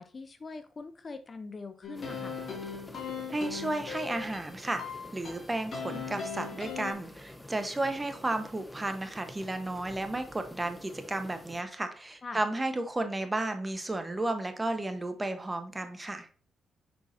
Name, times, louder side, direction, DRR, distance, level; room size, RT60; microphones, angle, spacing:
voice 1, 0.0-2.4 12.2-12.4, left 4 dB, 40° left, 10 dB, 0.7 m, -42 dB
sound 1, 1.8-6.9, left 6 dB, 60° left, 2.3 m, -39 dB
sound 2, 1.9-11.6, left 1 dB, 10° left, 0.9 m, -49 dB
voice 2, 3.3-4.8 5.1-16.3, right 2 dB, 20° right, 8 dB, 1.2 m, -33 dB
6.3 x 5.7 x 2.7 m, 0.40 s
supercardioid pair, 60°, 0 cm